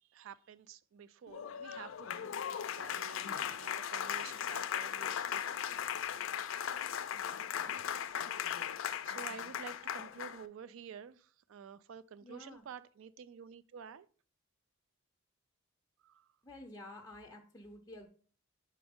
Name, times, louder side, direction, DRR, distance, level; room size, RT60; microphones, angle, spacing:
voice 1, 0.0-2.3 2.7-5.7 8.0-8.1 8.8-14.1 16.0-16.3, right 7 dB, 60° right, 0.3 m, -51 dB
Applause, 1.3-10.5, left 9 dB, 60° left, 0.4 m, -38 dB
voice 2, 12.2-12.6 16.4-18.1, left 1 dB, 15° left, 0.6 m, -50 dB
7.0 x 4.2 x 3.5 m
head